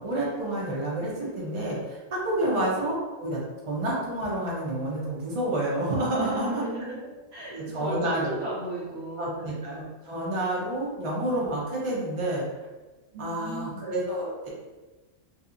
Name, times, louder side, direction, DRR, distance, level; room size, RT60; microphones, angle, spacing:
voice 1, 0.0-3.4 3.7-6.6 7.5-8.4 9.2-12.5 13.2-14.5, right 1 dB, 40° right, -6 dB, 0.5 m, -29 dB
voice 2, 6.1-7.0 7.3-9.5 13.1-13.9, right 1 dB, 60° right, -6 dB, 1.1 m, -35 dB
2.7 x 2.4 x 2.4 m, 1.2 s
omnidirectional pair, 1.3 m